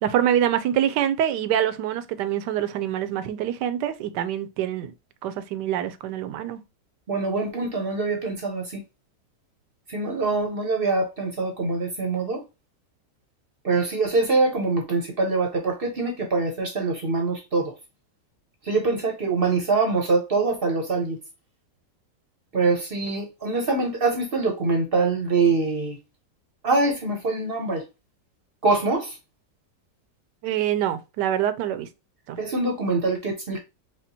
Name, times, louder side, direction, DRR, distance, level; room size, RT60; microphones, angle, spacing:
voice 1, 0.0-4.9 5.2-6.6 30.4-31.9 32.3-32.4, right 10 dB, 80° right, 1.2 m, -25 dB
voice 2, 7.1-8.8 9.9-12.4 13.6-17.7 18.6-21.2 22.5-26.0 26.6-27.8 28.6-29.2 32.4-33.6, right 3 dB, 45° right, 0.8 m, -24 dB
5.0 x 2.4 x 2.7 m
omnidirectional pair, 1.8 m